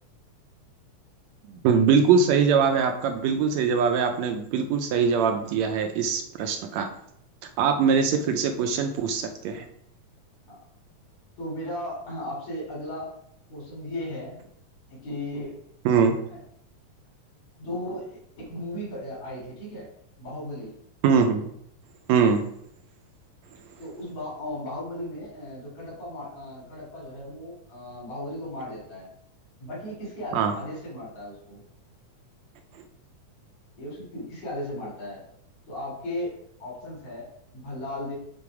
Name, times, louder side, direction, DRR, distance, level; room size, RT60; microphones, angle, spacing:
voice 1, 1.5-6.9 7.6-9.7 15.8-16.2 21.0-21.4 22.1-22.4 30.3-30.5, right 6 dB, 75° right, 6 dB, 1.6 m, -22 dB
voice 2, 11.4-13.1 13.5-14.4 14.9-15.5 16.3-16.4 17.6-19.9 20.2-20.7 22.1-22.3 23.8-29.1 29.6-31.6 33.8-35.2 35.7-36.3 36.6-37.3 37.5-38.1, left 1 dB, 65° left, -6 dB, 4.3 m, -36 dB
8.6 x 3.9 x 4.8 m, 0.71 s
omnidirectional pair, 3.6 m